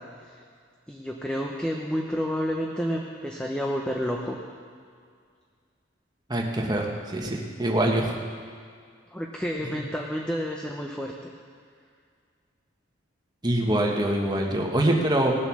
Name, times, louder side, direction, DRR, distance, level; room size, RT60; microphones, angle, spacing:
voice 1, 0.9-4.4 9.1-11.3, equal, 5° left, 0 dB, 0.8 m, -30 dB
voice 2, 6.3-8.0 9.6-9.8 13.4-15.3, right 1 dB, 20° right, 0 dB, 1.4 m, -24 dB
18.5 x 7.6 x 6.2 m, 2.1 s
head